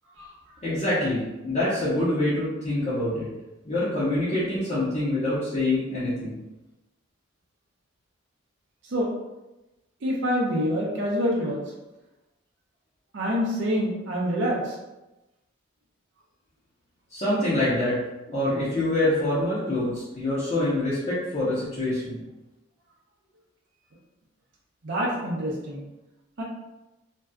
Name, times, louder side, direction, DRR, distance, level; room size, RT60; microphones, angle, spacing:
voice 1, 0.6-3.3 3.6-6.4 17.1-18.0 18.3-22.2, left 1 dB, 35° left, -11 dB, 0.6 m, -25 dB
voice 2, 10.0-11.6 13.1-14.8 24.8-25.8 26.4-26.5, equal, 60° right, -4 dB, 0.5 m, -26 dB
2.6 x 2.2 x 2.2 m, 1.0 s
head